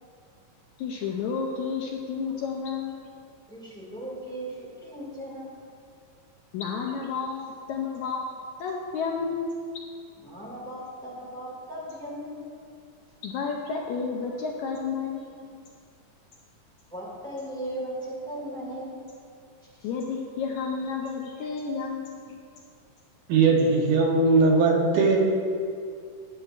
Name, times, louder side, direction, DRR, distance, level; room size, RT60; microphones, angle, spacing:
voice 1, 0.8-3.0 6.5-8.3 8.6-9.8 13.2-15.6 19.8-22.4, left 5 dB, 80° left, 1 dB, 1.8 m, -31 dB
voice 2, 3.5-5.5 10.2-12.4 16.9-18.9, right 1 dB, ahead, -7 dB, 1.3 m, -37 dB
voice 3, 23.3-25.2, right 3 dB, 70° right, -1 dB, 2.3 m, -20 dB
12.5 x 7.3 x 2.5 m, 2.3 s
omnidirectional pair, 3.7 m